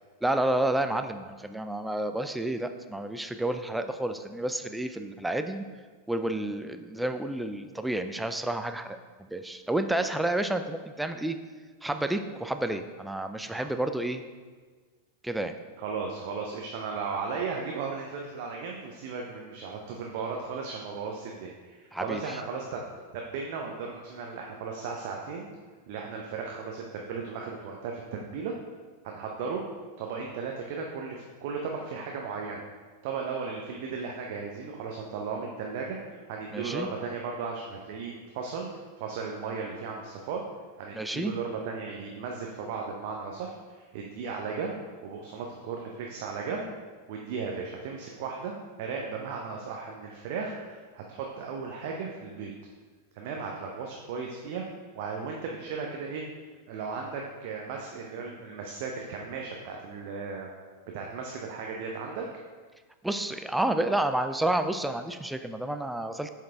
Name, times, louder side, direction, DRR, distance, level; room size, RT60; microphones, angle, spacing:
voice 1, 0.2-5.6 6.1-11.4 11.8-14.2 15.2-15.5 21.9-22.4 36.5-36.9 40.9-41.3 63.0-66.3, right 1 dB, 5° right, 8 dB, 0.4 m, -30 dB
voice 2, 15.8-22.8 23.1-25.5 25.9-28.5 29.0-29.6 30.0-32.6 33.0-38.7 39.0-40.4 40.8-44.8 45.0-46.7 47.1-48.5 48.8-52.5 53.1-54.6 54.9-56.2 56.7-60.5 60.9-62.2, right 5 dB, 50° right, 0 dB, 0.6 m, -36 dB
7.5 x 4.7 x 3.4 m, 1.5 s
figure-of-eight pair, 90°, 0 cm